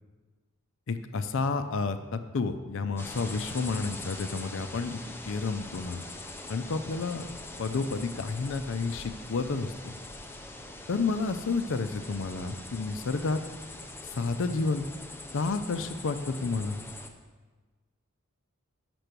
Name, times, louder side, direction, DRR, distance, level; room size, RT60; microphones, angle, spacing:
voice 1, 0.9-5.0 5.3-6.0 6.5-7.3 7.6-9.7 10.9-13.4 14.1-14.8 15.3-16.8, left 4 dB, 60° left, 10 dB, 0.5 m, -30 dB
sound 1, 3.0-17.1, left 2 dB, 10° left, 0.5 m, -43 dB
6.8 x 6.1 x 6.7 m, 1.3 s
head